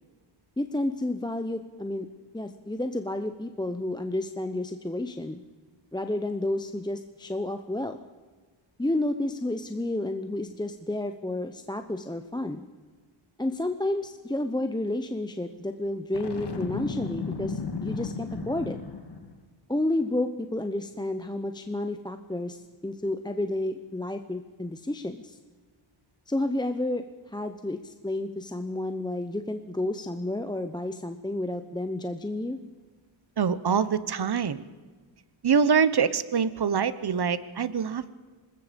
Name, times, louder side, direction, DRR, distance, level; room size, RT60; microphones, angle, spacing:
voice 1, 0.6-2.1 2.3-5.4 5.9-8.0 8.8-12.7 13.4-18.8 19.7-25.4 26.3-32.6, left 1 dB, 10° left, 7 dB, 0.9 m, -31 dB
Boom, 16.1-19.3, left 4 dB, 55° left, 2.4 m, -34 dB
voice 2, 33.4-34.6 35.4-38.1, right 6 dB, 55° right, 15 dB, 1.1 m, -24 dB
25.5 x 20.5 x 5.2 m, 1.4 s
wide cardioid pair, 105°, 47 cm